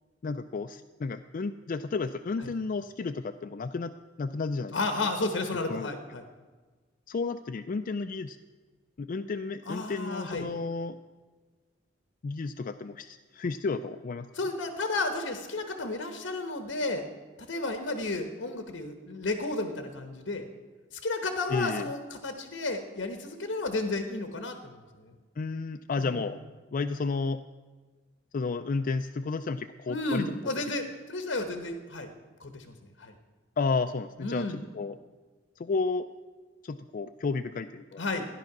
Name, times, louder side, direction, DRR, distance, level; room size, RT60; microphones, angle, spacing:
voice 1, 0.2-4.8 5.7-5.9 7.1-8.4 9.0-11.0 12.2-14.3 21.5-21.9 25.4-26.4 26.7-27.4 28.3-30.3 33.6-35.0 35.6-36.1 36.6-38.0, left 4 dB, 45° left, 7 dB, 0.4 m, -32 dB
voice 2, 4.7-6.2 9.7-10.5 14.3-17.0 17.5-20.5 20.9-25.1 26.0-26.3 29.9-32.1 32.4-33.1 34.2-34.6 38.0-38.3, left 2 dB, 70° left, 6 dB, 1.1 m, -32 dB
14.0 x 10.5 x 6.0 m, 1.3 s
head